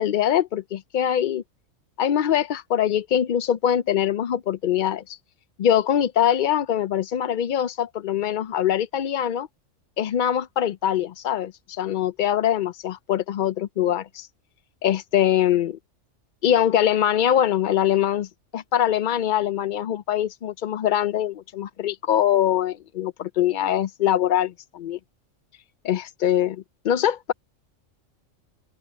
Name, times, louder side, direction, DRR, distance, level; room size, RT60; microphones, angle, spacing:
voice 1, 0.0-1.4 2.0-5.2 5.6-9.5 10.0-14.3 14.8-15.8 16.4-18.3 18.5-25.0 25.8-27.3, left 10 dB, 65° left, 0.5 m, -23 dB
open air
omnidirectional pair, 1.4 m